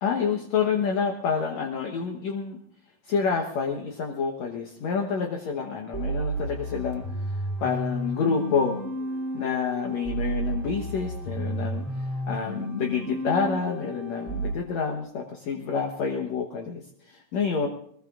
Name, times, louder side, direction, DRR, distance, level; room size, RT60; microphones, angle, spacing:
voice 1, 0.0-2.6 3.0-8.8 9.3-17.7, left 5 dB, 65° left, 2 dB, 2.2 m, -28 dB
sound 1, 5.9-14.5, right 1 dB, 5° left, 2.0 m, -32 dB
22.5 x 20.5 x 2.5 m, 0.67 s
omnidirectional pair, 3.7 m